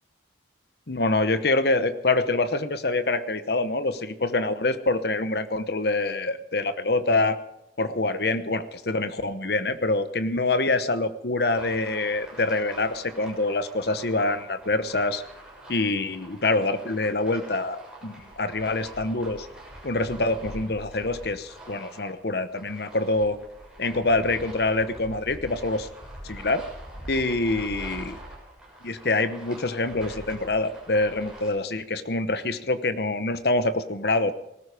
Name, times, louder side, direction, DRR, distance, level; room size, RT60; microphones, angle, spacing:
voice 1, 0.9-7.4 7.8-15.2 15.7-19.5 19.8-23.4 23.8-25.9 26.2-26.6 27.1-28.2 28.8-34.3, left 2 dB, 60° left, 12 dB, 1.0 m, -25 dB
Car Parking on Gravel or Man Walking on Rocks.Foley Sound, 11.5-31.5, right 1 dB, 5° right, 7.0 m, -44 dB
19.5 x 14.0 x 4.9 m, 0.86 s
head